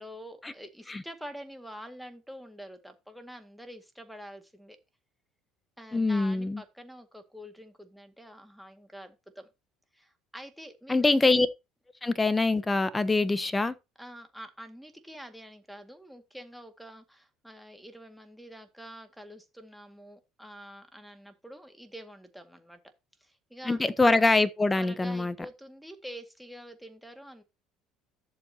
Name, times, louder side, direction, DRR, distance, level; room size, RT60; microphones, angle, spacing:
voice 1, 0.0-4.8 5.8-9.5 9.9-11.2 14.0-22.8 23.2-23.9 24.7-27.4, equal, ahead, 2.0 m, -46 dB
voice 2, 5.9-6.6 10.9-11.5 12.0-13.7 23.7-25.3, left 3 dB, 15° left, 1.0 m, -24 dB
11.5 x 7.0 x 2.8 m
supercardioid pair, 95°, 0 cm